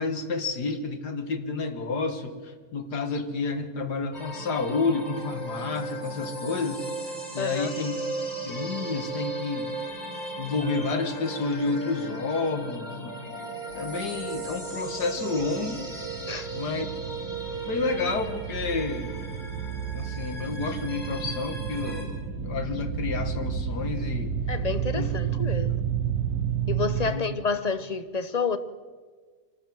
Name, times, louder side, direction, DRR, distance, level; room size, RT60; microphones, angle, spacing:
voice 1, 0.0-7.9 8.4-9.7 10.4-15.9 16.5-16.9 17.7-19.1 19.9-24.3 24.9-25.1 25.5-25.6 25.9-26.0 27.0-27.3, left 4 dB, 85° left, 2.2 m, -30 dB
sound 1, 4.1-22.0, right 2 dB, 25° left, 4.4 m, -36 dB
voice 2, 7.4-7.7 16.3-16.5 24.5-25.8 26.7-28.6, left 5 dB, 50° left, 0.4 m, -29 dB
sound 2, 13.7-27.1, right 8 dB, 85° right, 1.5 m, -32 dB
26.0 x 13.5 x 7.6 m
omnidirectional pair, 1.7 m